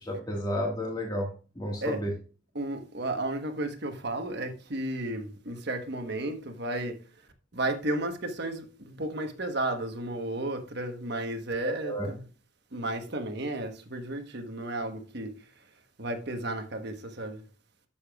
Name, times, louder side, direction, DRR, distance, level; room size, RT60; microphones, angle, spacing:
voice 1, 0.0-1.3 1.6-2.1 11.8-12.1, left 1 dB, 20° left, 1.7 m, -31 dB
voice 2, 2.5-7.0 7.5-12.2 12.7-15.3 16.0-17.4, right 1 dB, 55° right, 1.2 m, -33 dB
11.5 x 7.1 x 2.4 m
head